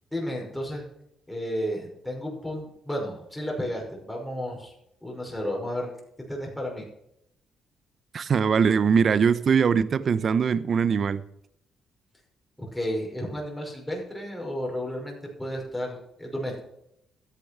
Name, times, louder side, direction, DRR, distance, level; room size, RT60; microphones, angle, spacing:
voice 1, 0.1-0.8 1.3-4.7 5.0-5.9 6.3-6.8 12.6-16.6, equal, 5° left, 5.5 m, -32 dB
voice 2, 8.1-11.2, right 6 dB, 50° right, 0.7 m, -22 dB
13.5 x 8.3 x 6.0 m
cardioid pair, 90°, 0 cm